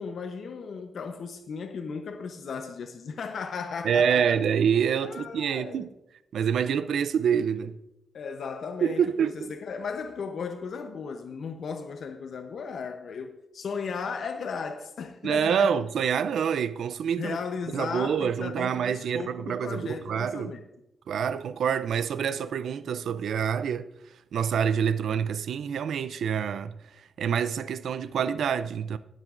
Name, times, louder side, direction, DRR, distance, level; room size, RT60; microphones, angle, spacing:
voice 1, 0.0-4.3 5.0-5.9 8.1-15.7 17.2-20.6, left 5 dB, 70° left, 0.8 m, -36 dB
voice 2, 3.8-5.9 6.3-7.8 8.8-9.5 15.2-17.4 17.7-20.6 21.1-23.9 24.3-26.8 27.2-29.0, right 7 dB, 85° right, 0.4 m, -26 dB
20.5 x 7.5 x 2.5 m
cardioid pair, 90°, 0 cm